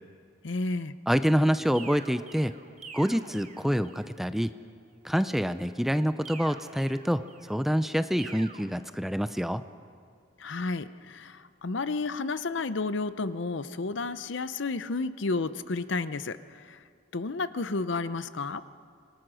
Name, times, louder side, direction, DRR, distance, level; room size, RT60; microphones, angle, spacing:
voice 1, 0.4-0.9 10.4-16.8 17.1-18.6, left 3 dB, 70° left, 13 dB, 0.7 m, -32 dB
voice 2, 1.1-2.5 2.9-4.5 5.0-9.6, equal, ahead, 11 dB, 0.5 m, -27 dB
sound 1, 1.7-4.2 6.2-7.6 8.2-8.6, right 5 dB, 35° right, 1.3 m, -47 dB
26.0 x 20.5 x 6.3 m, 2.2 s
head